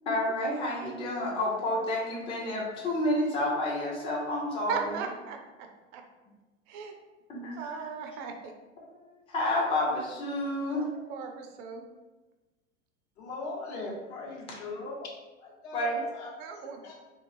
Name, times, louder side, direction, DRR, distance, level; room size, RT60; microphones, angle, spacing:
voice 1, 0.0-4.9 7.3-7.8 8.9-10.8 15.7-16.0, left 1 dB, 15° left, -3 dB, 0.5 m, -30 dB
voice 2, 4.7-6.0 6.7-6.9 7.6-8.5 10.7-11.8 16.4-16.9, right 6 dB, 40° right, 4 dB, 0.5 m, -38 dB
voice 3, 13.2-15.1 15.4-16.3 16.8-16.9, left 3 dB, 60° left, -2 dB, 0.9 m, -39 dB
3.0 x 2.3 x 2.6 m, 1.2 s
hypercardioid pair, 95°, 38 cm